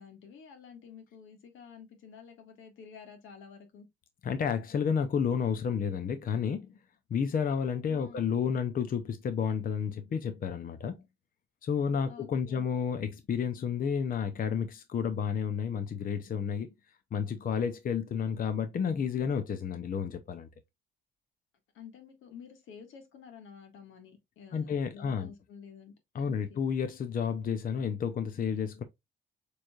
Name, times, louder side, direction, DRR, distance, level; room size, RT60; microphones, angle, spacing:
voice 1, 0.0-3.9 7.9-8.3 12.1-12.6 21.7-25.9 26.2-26.6, left 6 dB, 80° left, 1.7 m, -50 dB
voice 2, 4.2-6.8 7.1-11.0 11.6-16.7 17.1-20.5 24.5-25.3 26.1-28.8, left 7 dB, 45° left, 0.7 m, -31 dB
6.8 x 3.2 x 2.4 m
cardioid pair, 90°, 20 cm